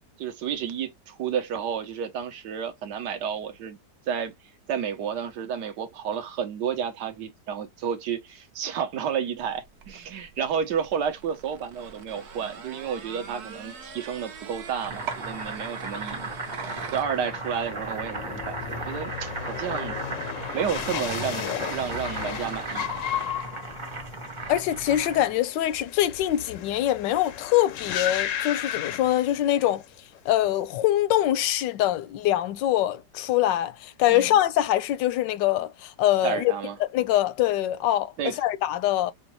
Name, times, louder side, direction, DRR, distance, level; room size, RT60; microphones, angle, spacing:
voice 1, 0.2-3.8 4.1-4.3 4.7-16.3 16.9-20.0 20.5-22.9 23.2-23.3 34.1-34.3 36.2-36.8 38.2-38.4, right 8 dB, 75° right, 1.5 m, -31 dB
sound 1, 9.4-17.0, right 6 dB, 55° right, 0.8 m, -42 dB
Boiling, 14.7-25.4, right 2 dB, 20° right, 0.9 m, -36 dB
sound 2, 16.8-29.9 30.1-30.7, left 10 dB, 70° left, 0.7 m, -35 dB
voice 2, 24.5-29.8 30.3-36.5 36.8-38.1 38.4-39.1, left 13 dB, 90° left, 1.3 m, -24 dB
5.1 x 2.2 x 2.9 m
omnidirectional pair, 1.9 m